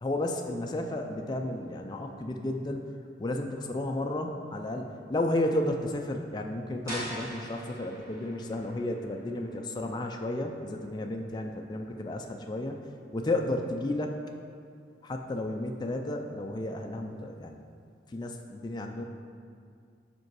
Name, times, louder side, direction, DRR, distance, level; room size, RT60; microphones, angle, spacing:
voice 1, 0.0-2.8 3.2-12.8 13.1-14.1 15.0-17.6 18.1-19.0, left 1 dB, 25° left, 3 dB, 0.3 m, -32 dB
sound 1, 6.9-12.5, equal, 15° right, 1.7 m, -44 dB
5.8 x 5.1 x 4.7 m, 2.3 s
head